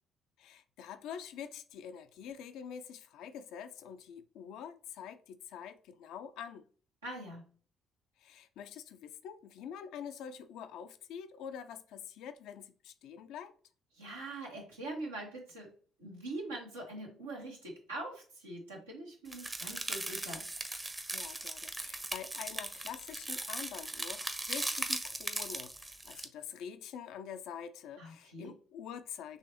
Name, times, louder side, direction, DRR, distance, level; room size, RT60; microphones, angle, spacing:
voice 1, 0.4-6.7 8.2-13.5 21.1-29.4, left 8 dB, 65° left, 0.4 m, -46 dB
voice 2, 7.0-7.5 13.9-15.7 16.0-20.5 28.0-28.5, right 2 dB, 90° right, 1.3 m, -43 dB
sound 1, 19.3-26.3, right 2 dB, 20° right, 0.7 m, -39 dB
5.5 x 3.2 x 2.9 m
hypercardioid pair, 45°, 0 cm